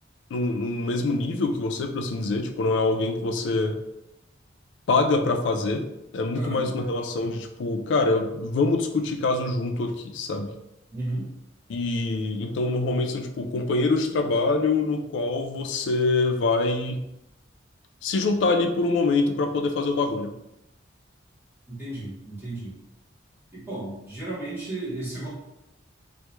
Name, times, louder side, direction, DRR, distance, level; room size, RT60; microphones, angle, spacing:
voice 1, 0.3-3.8 4.9-5.8 6.1-10.5 11.7-17.0 18.0-20.3, left 3 dB, 75° left, 5 dB, 0.3 m, -25 dB
voice 2, 6.3-6.7 10.9-11.2 21.7-22.7 23.5-25.3, right 2 dB, 10° right, -8 dB, 0.9 m, -33 dB
2.2 x 2.1 x 2.9 m, 0.86 s
head